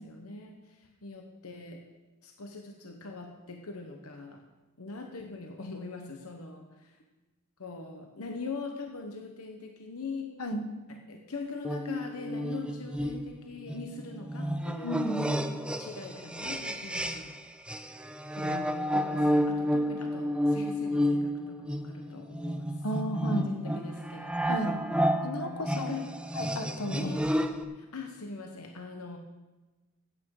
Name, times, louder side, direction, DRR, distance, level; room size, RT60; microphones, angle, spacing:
voice 1, 0.0-1.8 2.2-4.4 4.8-7.0 7.6-10.3 10.9-15.2 15.8-17.4 18.3-22.8 23.2-24.8 25.7-26.4 26.9-27.3 27.7-29.2, left 4 dB, 70° left, 3 dB, 1.1 m, -42 dB
sound 1, 11.6-17.4 17.7-27.6, equal, 5° right, 0.6 m, -31 dB
voice 2, 14.8-15.4 22.8-23.5 24.4-24.8 25.2-25.9 26.4-27.2, equal, 90° left, 6 dB, 1.4 m, -33 dB
15.0 x 8.9 x 4.9 m, 1.2 s
head